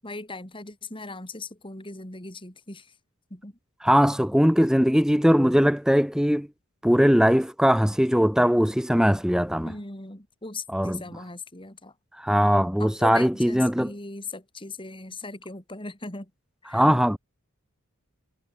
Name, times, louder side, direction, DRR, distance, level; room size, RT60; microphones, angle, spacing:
voice 1, 0.0-2.9 3.3-3.6 9.6-11.9 12.3-16.3 16.6-16.8, left 3 dB, 25° left, 3.9 m, -39 dB
voice 2, 3.8-6.5 6.8-9.7 10.7-11.0 12.2-13.9 16.7-17.2, equal, 5° right, 1.8 m, -20 dB
head